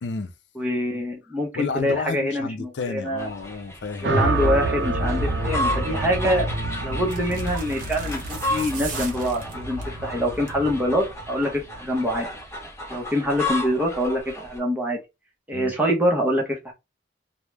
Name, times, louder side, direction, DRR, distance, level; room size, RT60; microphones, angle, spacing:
voice 1, 0.0-0.3 1.5-4.1 15.5-15.7, left 4 dB, 70° left, 0.4 m, -31 dB
voice 2, 0.6-3.3 4.0-6.5 6.8-12.3 12.9-15.0 15.5-16.7, equal, 10° right, 0.7 m, -25 dB
sound 1, 3.2-14.6, left 1 dB, 15° left, 1.0 m, -33 dB
sound 2, 4.0-12.3, right 2 dB, 70° right, 0.5 m, -28 dB
sound 3, 6.0-6.3 7.0-10.0 10.3-10.7 11.0-11.1, right 4 dB, 45° right, 0.8 m, -38 dB
2.3 x 2.0 x 3.1 m
head